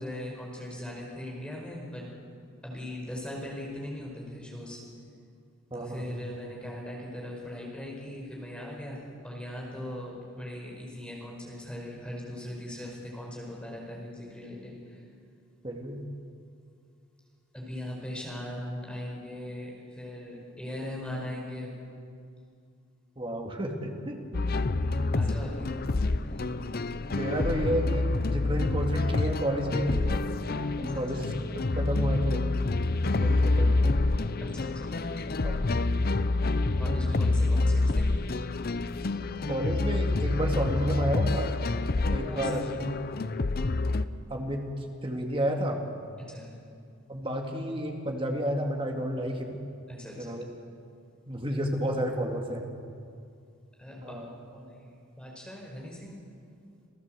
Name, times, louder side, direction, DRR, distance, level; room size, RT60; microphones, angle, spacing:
voice 1, 0.0-2.1 2.6-4.8 5.7-15.0 17.5-21.8 24.8-25.8 26.2-26.6 30.8-31.3 34.4-35.4 36.8-38.2 42.0-43.4 46.2-46.5 49.9-50.4 53.8-56.2, left 1 dB, 5° left, -2 dB, 4.9 m, -40 dB
voice 2, 5.7-6.2 15.6-16.0 23.2-24.6 27.1-30.3 30.8-32.4 33.1-33.9 35.4-35.7 39.5-41.5 42.1-42.6 44.3-44.6 45.0-45.8 47.1-49.6 50.2-50.4 51.3-52.7 54.0-54.4, equal, 25° right, 2 dB, 2.3 m, -31 dB
sound 1, 24.3-44.1, left 2 dB, 45° left, 0.6 m, -27 dB
28.0 x 15.5 x 7.7 m, 2.4 s
head